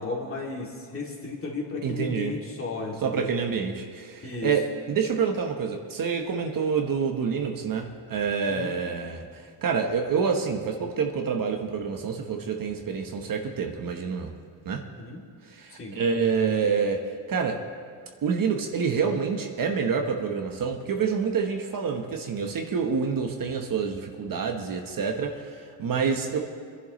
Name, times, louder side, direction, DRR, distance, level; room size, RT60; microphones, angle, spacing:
voice 1, 0.0-3.3 4.2-4.5 8.4-8.7 15.0-15.2 15.7-16.0, left 3 dB, 30° left, -2 dB, 2.6 m, -34 dB
voice 2, 1.8-2.4 3.0-14.3 14.6-14.8 15.4-17.6 18.2-26.4, right 6 dB, 45° right, 3 dB, 1.2 m, -27 dB
25.0 x 11.0 x 3.2 m, 2.1 s
cardioid pair, 125°, 47 cm